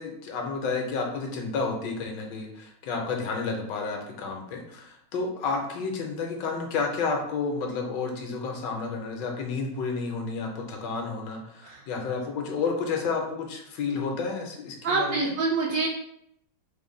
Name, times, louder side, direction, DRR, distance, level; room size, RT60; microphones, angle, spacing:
voice 1, 0.0-15.3, left 4 dB, 75° left, 2 dB, 1.3 m, -31 dB
voice 2, 14.8-15.9, right 3 dB, 70° right, -2 dB, 0.9 m, -26 dB
3.6 x 2.2 x 3.7 m, 0.74 s
omnidirectional pair, 2.0 m